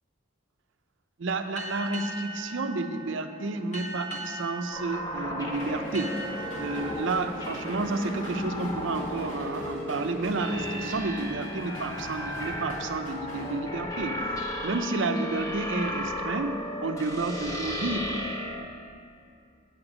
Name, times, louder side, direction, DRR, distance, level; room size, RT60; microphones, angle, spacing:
voice 1, 1.2-18.2, right 3 dB, 65° right, 8 dB, 0.5 m, -31 dB
sound 1, 1.6-8.8, right 2 dB, 35° left, 1.1 m, -41 dB
sound 2, 4.7-18.6, left 1 dB, 15° left, 0.7 m, -35 dB
sound 3, 5.5-13.5, left 1 dB, 70° left, 2.0 m, -42 dB
8.2 x 8.0 x 4.9 m, 2.5 s
head